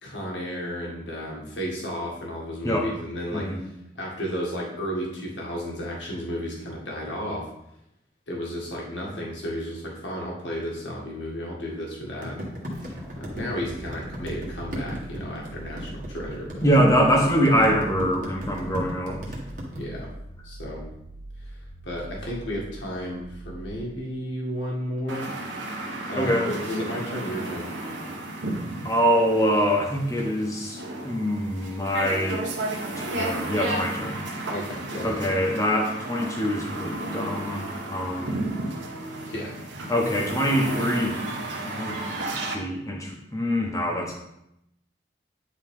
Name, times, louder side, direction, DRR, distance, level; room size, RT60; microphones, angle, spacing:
voice 1, 0.0-3.5 4.0-7.5 8.3-12.5 13.2-16.7 19.8-20.1 20.4-20.8 21.8-25.3 26.1-27.7 34.5-35.2 39.3-39.5, equal, 80° left, -3 dB, 1.8 m, -33 dB
voice 2, 3.3-3.6 16.6-19.2 26.2-26.5 28.8-32.4 33.0-34.2 35.0-38.5 39.9-41.2 41.6-42.0 42.5-44.1, equal, 15° left, -1 dB, 1.2 m, -24 dB
sound 1, 12.2-19.8, equal, 45° right, 1.5 m, -36 dB
sound 2, 12.7-24.2, right 2 dB, 20° right, 1.4 m, -42 dB
sound 3, 25.1-42.5, right 2 dB, 85° right, 1.4 m, -33 dB
9.8 x 4.0 x 3.7 m, 0.82 s
head